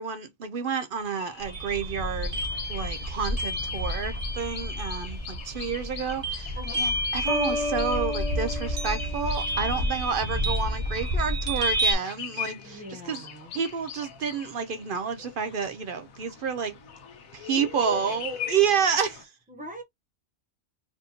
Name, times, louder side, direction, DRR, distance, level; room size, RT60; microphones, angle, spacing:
voice 1, 0.0-2.4 2.7-13.2 13.5-16.7 17.3-19.3, right 6 dB, 60° right, 0.6 m, -29 dB
sound 1, 1.0-19.2, left 8 dB, 80° left, 1.3 m, -42 dB
sound 2, 1.4-11.9, equal, 30° right, 1.0 m, -30 dB
sound 3, 7.3-10.1, left 3 dB, 50° left, 0.4 m, -32 dB
voice 2, 12.6-13.5 17.5-18.2 19.5-19.8, right 1 dB, 10° right, 0.6 m, -38 dB
4.3 x 2.8 x 2.8 m
omnidirectional pair, 1.4 m